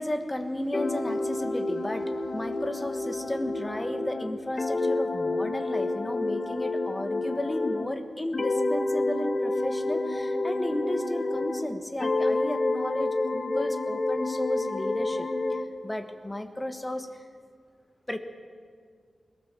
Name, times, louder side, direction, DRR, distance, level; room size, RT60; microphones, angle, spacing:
voice 1, 0.0-17.1 18.1-18.2, left 1 dB, 15° left, 7 dB, 1.4 m, -34 dB
sound 1, 0.7-7.9 8.3-11.7 12.0-15.7, left 2 dB, 40° left, 1.3 m, -29 dB
21.0 x 18.0 x 7.4 m, 2.1 s
wide cardioid pair, 120°, 0 cm